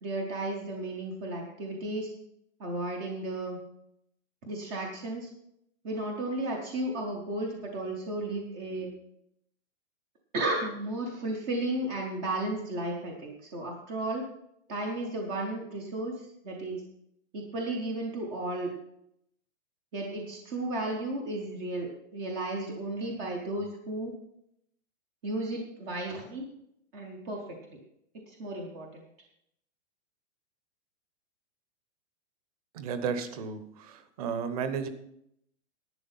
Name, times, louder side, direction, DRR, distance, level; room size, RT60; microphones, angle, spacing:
voice 1, 0.0-2.1 2.6-3.6 4.4-5.3 5.8-8.9 10.3-14.3 14.7-16.8 17.3-18.7 19.9-24.1 25.2-26.5 26.9-27.4 27.7-27.8 28.3-29.0, right 2 dB, 10° right, 1 dB, 0.5 m, -34 dB
voice 2, 32.7-34.9, right 6 dB, 30° right, 10 dB, 1.0 m, -33 dB
11.0 x 8.6 x 5.6 m, 0.74 s
hypercardioid pair, 175°, 36 cm